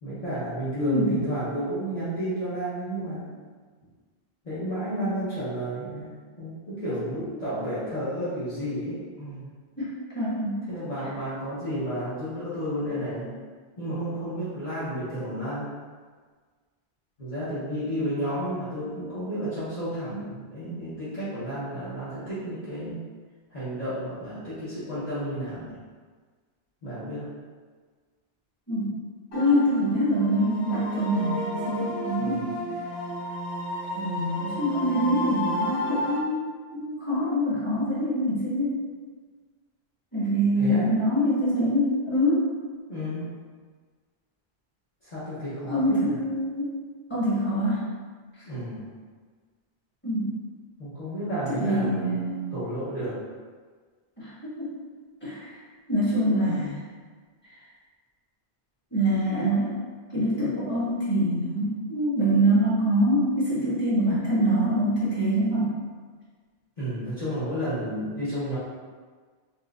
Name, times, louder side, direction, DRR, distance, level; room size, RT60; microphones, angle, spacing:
voice 1, 0.0-3.3 4.4-9.5 10.7-13.3 13.8-15.7 17.2-23.1 23.5-25.8 26.8-27.3 32.2-32.6 40.5-41.0 42.9-43.4 45.0-46.2 48.4-48.9 50.8-52.2 52.5-53.2 66.8-68.6, equal, 45° left, -14 dB, 0.9 m, -32 dB
voice 2, 0.7-1.2 9.8-10.5 28.7-28.9 29.3-32.4 33.9-38.8 40.1-42.4 45.7-46.8 47.1-47.8 50.0-50.3 51.5-52.5 54.2-54.3 54.6-54.7 55.2-55.5 55.9-56.8 58.9-59.7 60.1-65.7, equal, 10° left, -12 dB, 1.3 m, -25 dB
sound 1, 29.3-36.2, equal, 65° left, 1.0 m, -32 dB
4.2 x 2.2 x 2.3 m, 1.5 s
omnidirectional pair, 1.0 m